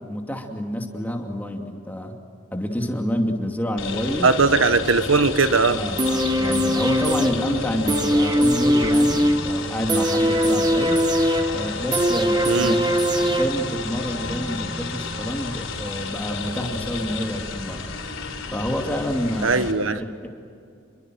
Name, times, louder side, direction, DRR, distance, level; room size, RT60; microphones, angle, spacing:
voice 1, 0.0-2.1 2.5-4.3 5.7-11.0 11.5-17.8 18.5-20.3, equal, 10° left, 2 dB, 2.5 m, -28 dB
sound 1, 3.8-19.7, left 3 dB, 85° left, 4.5 m, -32 dB
voice 2, 4.2-5.8 12.5-12.8 19.4-20.0, right 4 dB, 85° right, 11 dB, 1.3 m, -19 dB
sound 2, 6.0-14.0 14.3-14.4, equal, 20° right, 1.3 m, -21 dB
28.5 x 23.0 x 7.8 m, 2.4 s
head